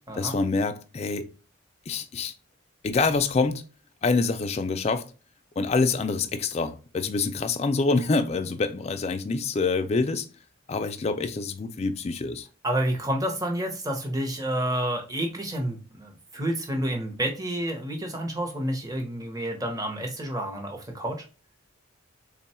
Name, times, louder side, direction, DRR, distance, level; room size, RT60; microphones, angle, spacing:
voice 1, 0.1-1.3 1.9-2.3 2.8-3.6 4.0-5.1 5.6-10.3 10.7-12.5, left 4 dB, 30° left, 0.3 m, -26 dB
voice 2, 12.6-21.2, right 1 dB, 20° right, 0.7 m, -29 dB
3.4 x 2.2 x 4.2 m
head